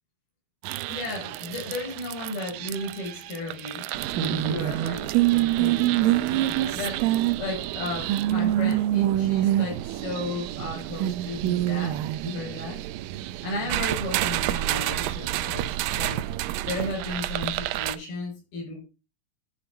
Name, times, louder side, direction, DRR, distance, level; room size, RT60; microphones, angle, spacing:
sound 1, 0.6-18.0, right 14 dB, 80° right, 2.3 m, -27 dB
voice 1, 0.9-3.9 4.1-5.1 5.3-12.8 13.4-16.2 16.6-18.8, left 2 dB, 85° left, 0 dB, 7.1 m, -34 dB
12.0 x 4.3 x 6.1 m, 0.30 s
omnidirectional pair, 4.2 m